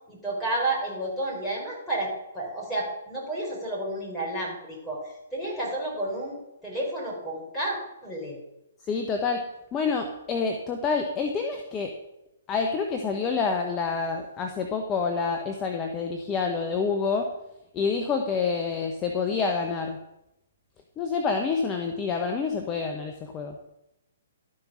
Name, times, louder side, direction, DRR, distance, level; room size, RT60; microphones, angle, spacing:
voice 1, 0.1-8.4, right 1 dB, 5° left, -7 dB, 4.6 m, -31 dB
voice 2, 8.8-9.4 9.7-11.9 12.5-17.3 17.7-20.0 21.0-23.6, left 5 dB, 20° left, 4 dB, 1.0 m, -27 dB
12.5 x 5.3 x 6.3 m, 0.88 s
hypercardioid pair, 130°, 0 cm